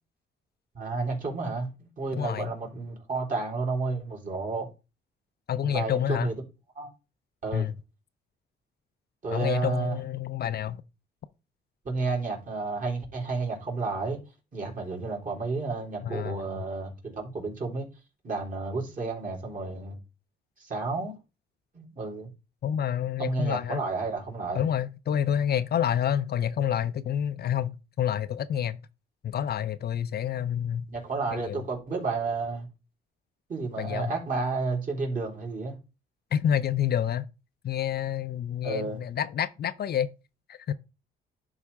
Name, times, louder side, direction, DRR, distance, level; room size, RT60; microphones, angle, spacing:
voice 1, 0.7-4.7 5.6-6.3 6.8-6.9 7.4-7.7 9.2-10.0 11.8-14.2 14.5-17.9 18.2-20.0 20.6-21.2 21.7-22.3 23.2-24.7 30.9-32.7 33.5-35.8 38.6-39.0, right 3 dB, 40° right, 3.7 m, -31 dB
voice 2, 2.1-2.5 5.5-6.3 7.5-7.7 9.3-10.8 16.0-16.6 22.6-23.8 24.5-28.8 29.2-30.9 31.3-31.6 33.8-34.1 36.3-37.3 37.6-40.1 40.5-40.7, left 9 dB, 55° left, 0.5 m, -28 dB
11.0 x 4.1 x 3.5 m
cardioid pair, 90°, 20 cm